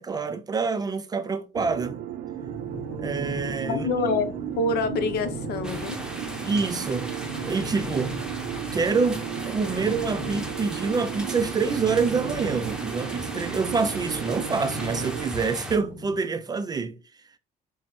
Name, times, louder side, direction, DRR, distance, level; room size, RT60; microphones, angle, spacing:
voice 1, 0.0-2.0 3.0-3.9 6.4-7.2 7.5-8.2 8.7-17.0, right 4 dB, 25° right, 0.4 m, -26 dB
sound 1, 1.5-15.3, right 10 dB, 75° right, 0.5 m, -34 dB
sound 2, 2.4-16.2, left 2 dB, 55° left, 1.3 m, -40 dB
voice 2, 3.7-4.3 4.6-6.0, left 3 dB, 75° left, 0.7 m, -26 dB
sound 3, 5.6-15.8, right 1 dB, 5° right, 0.8 m, -38 dB
5.9 x 2.1 x 3.0 m
cardioid pair, 110°, 17 cm